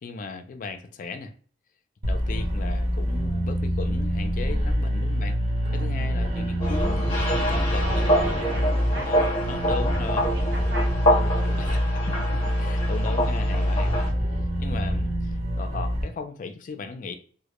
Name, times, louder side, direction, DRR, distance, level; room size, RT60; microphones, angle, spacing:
voice 1, 0.0-1.3 2.0-5.4 5.7-10.3 11.4-14.1 14.6-17.1, left 4 dB, 50° left, 7 dB, 0.3 m, -37 dB
sound 1, 2.0-16.0, equal, 35° right, 0.6 m, -25 dB
voice 2, 4.4-4.7 5.6-6.1 7.8-9.4 10.3-11.8 12.6-12.7, right 1 dB, 70° right, 0 dB, 0.7 m, -39 dB
sound 2, 6.6-14.1, equal, 30° left, 0.8 m, -27 dB
2.1 x 2.0 x 2.9 m, 0.43 s
head